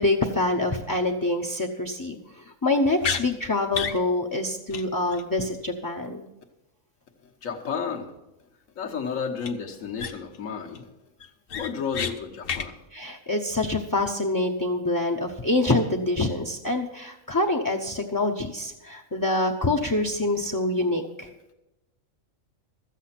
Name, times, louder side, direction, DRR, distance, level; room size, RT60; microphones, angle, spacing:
voice 1, 0.0-6.2 12.9-21.3, left 2 dB, 20° left, 0 dB, 0.5 m, -26 dB
sound 1, 3.0-3.2 3.7-4.0 4.3-4.4 4.7-4.8 5.1-5.2 9.4-9.5 10.0-10.4 10.7-10.8 11.2-12.1 12.4-12.7, left 6 dB, 55° left, 0.8 m, -30 dB
voice 2, 7.2-8.1 8.7-10.9 11.5-12.8, left 6 dB, 75° left, 2 dB, 1.6 m, -32 dB
13.5 x 8.4 x 5.9 m, 0.96 s
omnidirectional pair, 1.4 m